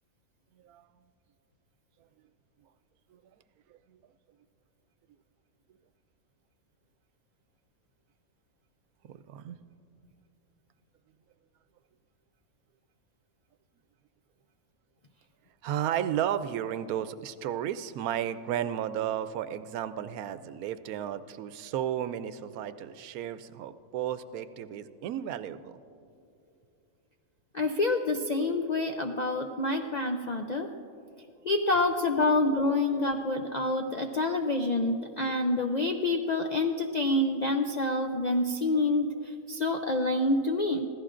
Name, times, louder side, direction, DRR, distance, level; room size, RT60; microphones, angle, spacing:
voice 1, 9.1-9.6 15.6-25.7, right 10 dB, 85° right, 12 dB, 1.0 m, -33 dB
voice 2, 27.5-30.7 31.4-40.9, left 2 dB, 75° left, 4 dB, 0.4 m, -27 dB
26.0 x 15.5 x 2.5 m, 2.6 s
omnidirectional pair, 1.5 m